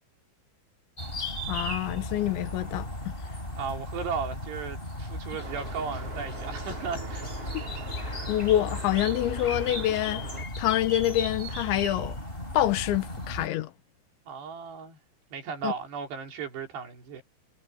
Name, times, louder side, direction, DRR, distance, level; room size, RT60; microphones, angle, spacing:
sound 1, 1.0-13.5, left 1 dB, 10° left, 5.9 m, -36 dB
voice 1, 1.5-2.9 7.5-7.6 8.3-10.2 10.6-12.2 12.5-13.7 15.6-15.7, left 13 dB, 85° left, 3.5 m, -26 dB
voice 2, 3.6-7.3 14.3-15.0 15.3-17.2, right 6 dB, 65° right, 6.0 m, -35 dB
sound 2, 5.4-10.4, right 3 dB, 30° right, 5.8 m, -42 dB
omnidirectional pair, 5.2 m